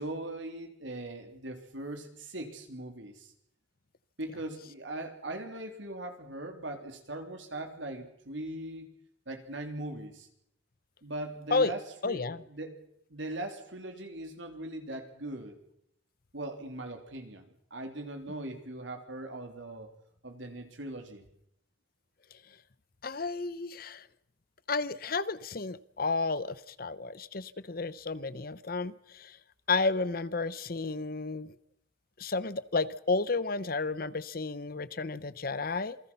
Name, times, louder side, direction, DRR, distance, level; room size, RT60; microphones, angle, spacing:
voice 1, 0.0-3.3 4.2-8.9 9.3-10.3 11.0-12.8 13.1-15.6 16.3-17.4 17.7-19.9 20.2-21.2, right 1 dB, 80° right, 5 dB, 3.5 m, -40 dB
voice 2, 12.0-12.4 23.0-24.1 24.7-29.4 29.7-31.5 32.2-36.0, left 3 dB, 50° left, 17 dB, 0.8 m, -32 dB
27.5 x 20.5 x 5.7 m, 0.74 s
head